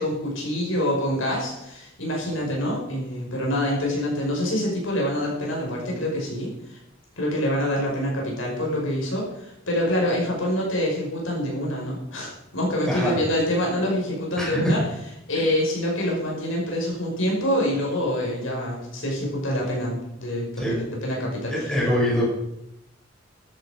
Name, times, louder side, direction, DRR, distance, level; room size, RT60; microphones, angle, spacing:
voice 1, 0.0-6.8 7.2-14.8 15.3-21.7, left 1 dB, 80° left, -2 dB, 5.7 m, -26 dB
voice 2, 12.9-13.2 14.4-14.6 20.6-20.8 21.5-22.3, left 1 dB, 5° left, -5 dB, 5.6 m, -24 dB
13.5 x 11.5 x 5.1 m, 0.84 s
head